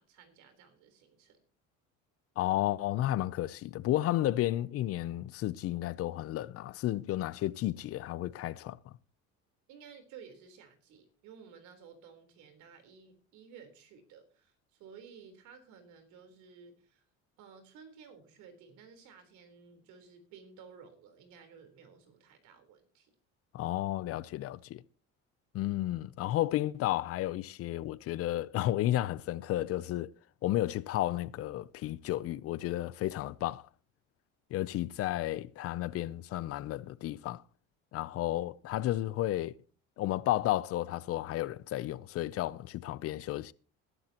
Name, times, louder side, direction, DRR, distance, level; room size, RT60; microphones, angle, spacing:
voice 1, 0.0-1.4 9.7-17.0 17.4-23.1, right 6 dB, 70° right, 3.9 m, -55 dB
voice 2, 2.4-8.8 23.5-24.8 25.5-30.1 30.4-33.7 34.5-37.4 37.9-39.5 40.0-43.5, left 14 dB, 50° left, 0.6 m, -32 dB
20.5 x 12.0 x 2.9 m
cardioid pair, 140°, 30 cm